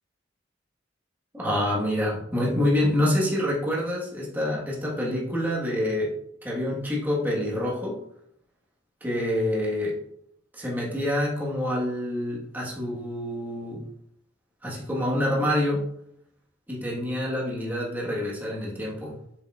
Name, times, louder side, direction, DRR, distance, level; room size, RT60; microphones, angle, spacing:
voice 1, 1.3-6.1 6.4-8.0 9.0-10.0 10.5-13.9 14.6-15.9 16.7-19.2, left 1 dB, 10° right, -5 dB, 1.3 m, -27 dB
7.4 x 6.6 x 2.4 m, 0.71 s
head